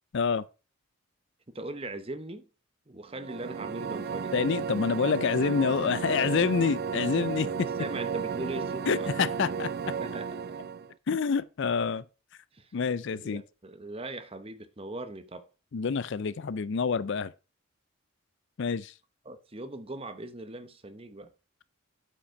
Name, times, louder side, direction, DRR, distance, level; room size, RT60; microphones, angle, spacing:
voice 1, 0.1-0.4 4.3-7.7 8.9-9.7 11.1-12.0 12.7-13.4 15.7-17.3 18.6-18.9, left 5 dB, 55° left, 0.4 m, -27 dB
voice 2, 1.5-2.4 2.9-4.3 7.4-9.1 10.0-10.4 12.5-12.7 13.2-15.5 19.2-21.3, right 2 dB, 25° right, 0.9 m, -40 dB
sound 1, 3.1-10.9, right 6 dB, 45° right, 0.4 m, -33 dB
8.4 x 5.2 x 5.6 m
head